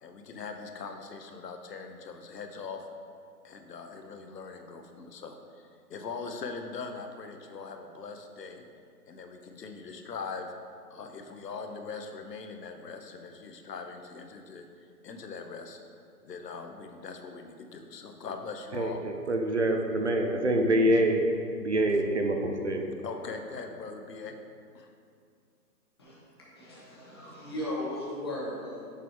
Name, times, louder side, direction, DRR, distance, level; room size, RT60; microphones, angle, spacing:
voice 1, 0.0-2.9 3.4-8.6 9.1-10.5 10.9-14.7 15.0-15.8 16.2-19.0 23.0-24.4 24.7-24.9, left 4 dB, 80° left, 5 dB, 0.9 m, -41 dB
voice 2, 18.7-21.2 21.6-22.8, right 1 dB, 45° right, 3 dB, 0.5 m, -26 dB
voice 3, 26.0-28.9, left 1 dB, 15° left, -7 dB, 0.8 m, -37 dB
6.9 x 4.7 x 4.6 m, 2.3 s
hypercardioid pair, 170°, 49 cm